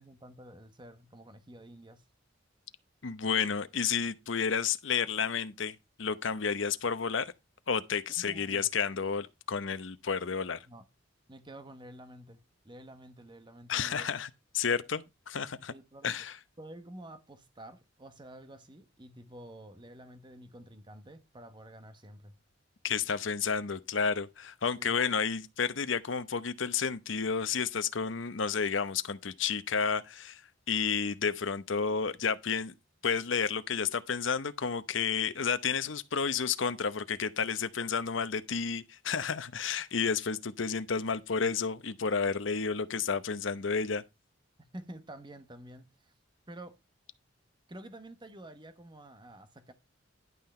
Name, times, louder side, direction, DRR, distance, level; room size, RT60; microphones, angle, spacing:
voice 1, 0.0-2.0 8.2-8.7 10.6-10.8 11.3-14.1 15.7-16.3 16.6-22.4 24.8-25.0 44.6-46.1 46.5-46.8 47.7-49.7, right 1 dB, 25° right, 1.2 m, -49 dB
voice 2, 3.0-7.3 7.7-10.6 13.7-15.7 16.0-16.4 22.8-30.4 30.7-32.7 33.0-44.0, left 6 dB, 75° left, 0.8 m, -31 dB
11.0 x 5.8 x 4.3 m
head